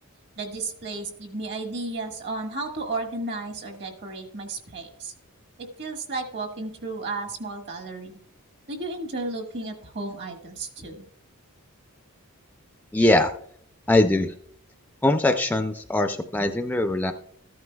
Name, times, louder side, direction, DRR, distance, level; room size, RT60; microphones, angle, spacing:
voice 1, 0.4-5.1 5.6-8.2 8.7-11.1, right 3 dB, 55° right, 3 dB, 1.4 m, -33 dB
voice 2, 12.9-13.3 13.9-14.3 15.0-17.1, left 1 dB, 10° left, 7 dB, 0.4 m, -21 dB
14.0 x 9.4 x 2.2 m, 0.62 s
head